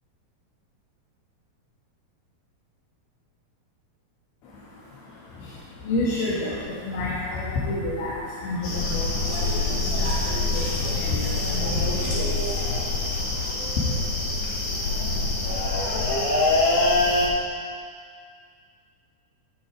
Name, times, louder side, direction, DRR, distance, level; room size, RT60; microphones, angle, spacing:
voice 1, 4.4-13.9, left 2 dB, 85° left, -7 dB, 3.7 m, -31 dB
sound 1, 8.6-17.3, left 2 dB, 45° left, 2.8 m, -25 dB
18.0 x 6.5 x 4.8 m, 2.1 s
omnidirectional pair, 4.4 m